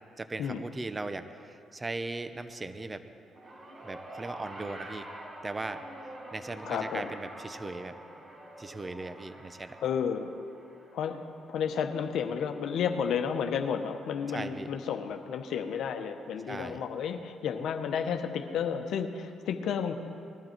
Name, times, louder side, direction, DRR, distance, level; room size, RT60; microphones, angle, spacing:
voice 1, 0.2-3.0 3.8-5.1 5.4-5.8 6.3-7.9 8.6-9.8 14.3-14.7 16.5-16.8, right 2 dB, 25° right, 10 dB, 0.8 m, -38 dB
sound 1, 3.3-13.8 14.8-14.9, right 1 dB, 45° right, 2.6 m, -47 dB
voice 2, 6.6-7.1 9.8-10.3 10.9-19.9, left 7 dB, 75° left, 6 dB, 0.9 m, -32 dB
20.5 x 12.5 x 4.5 m, 2.5 s
cardioid pair, 90°, 0 cm